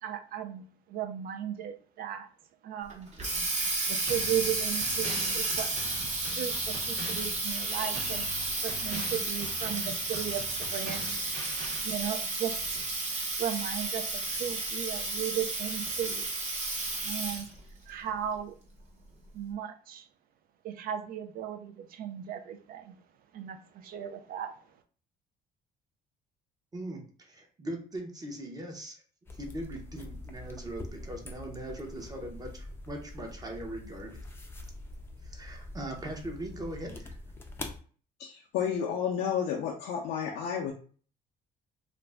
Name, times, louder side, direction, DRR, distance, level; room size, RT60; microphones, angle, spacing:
voice 1, 0.0-2.3 2.6-3.1 3.9-5.7 6.4-11.3 11.8-12.9 13.4-16.3 17.0-17.5 17.9-18.6 19.3-20.1 20.6-23.0 23.3-24.8, right 10 dB, 60° right, 8 dB, 0.4 m, -36 dB
Water tap faucet, 2.9-17.6, right 2 dB, 45° right, 0.9 m, -32 dB
sound 1, 4.1-11.8, right 1 dB, 75° right, 1.3 m, -43 dB
voice 2, 26.7-29.0 29.4-34.2 35.2-37.2, right 1 dB, 20° right, 2 dB, 0.7 m, -40 dB
sound 2, 29.3-37.8, left 2 dB, 15° left, 0.4 m, -44 dB
voice 3, 38.2-40.7, left 8 dB, 85° left, -1 dB, 0.5 m, -31 dB
2.5 x 2.1 x 3.3 m, 0.42 s
cardioid pair, 110°, 17 cm